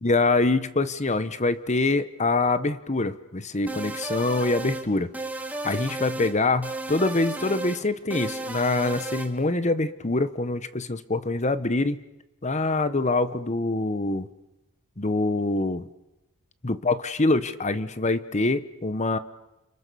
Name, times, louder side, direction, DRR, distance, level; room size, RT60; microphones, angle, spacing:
voice 1, 0.0-5.1 5.6-12.0 12.4-14.3 15.0-15.9 16.6-19.2, left 2 dB, 35° left, 13 dB, 1.1 m, -25 dB
sound 1, 3.7-4.9 5.1-6.3 6.6-7.8 8.1-9.3, right 2 dB, 5° right, 2.3 m, -33 dB
29.5 x 26.5 x 7.0 m, 0.96 s
head